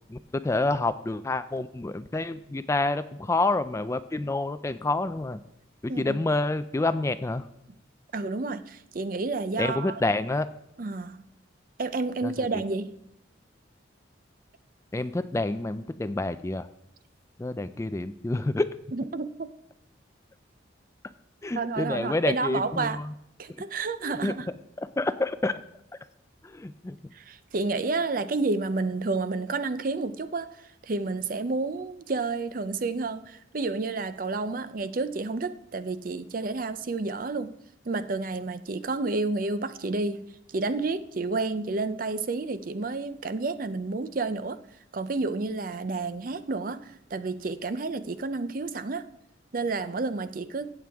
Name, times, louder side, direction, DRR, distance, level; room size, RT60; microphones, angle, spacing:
voice 1, 0.4-5.4 5.8-7.5 9.6-10.5 12.2-12.6 14.9-16.7 17.4-18.7 21.4-23.1 24.0-24.3 24.8-25.6 26.4-27.0, left 2 dB, 15° left, 12 dB, 0.3 m, -28 dB
voice 2, 5.9-6.2 8.1-10.0 10.8-11.2 11.8-13.0 18.9-19.5 21.5-23.0 23.4-24.5 27.1-37.5 37.9-40.2 40.5-44.6 44.9-49.1 49.5-50.7, right 3 dB, 45° right, 12 dB, 0.5 m, -30 dB
16.0 x 7.6 x 3.5 m, 0.82 s
head